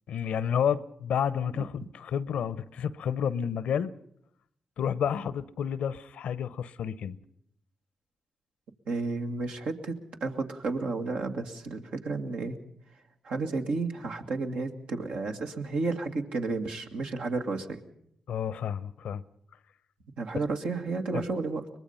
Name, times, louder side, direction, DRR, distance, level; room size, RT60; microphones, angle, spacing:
voice 1, 0.1-3.9 4.8-7.2 18.3-19.2 21.1-21.2, left 8 dB, 80° left, 0.7 m, -30 dB
voice 2, 8.9-12.6 13.2-17.8 20.2-21.6, right 3 dB, 75° right, 2.0 m, -32 dB
23.0 x 20.5 x 5.6 m
supercardioid pair, 45°, 2 cm